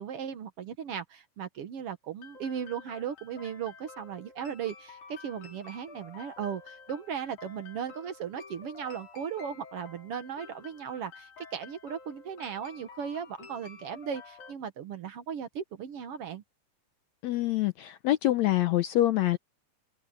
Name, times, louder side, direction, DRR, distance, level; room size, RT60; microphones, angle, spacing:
voice 1, 0.0-16.4, right 8 dB, 65° right, 1.5 m, -37 dB
sound 1, 2.2-14.5, left 5 dB, 60° left, 4.8 m, -50 dB
voice 2, 17.2-19.4, left 14 dB, 75° left, 1.6 m, -25 dB
omnidirectional pair, 4.1 m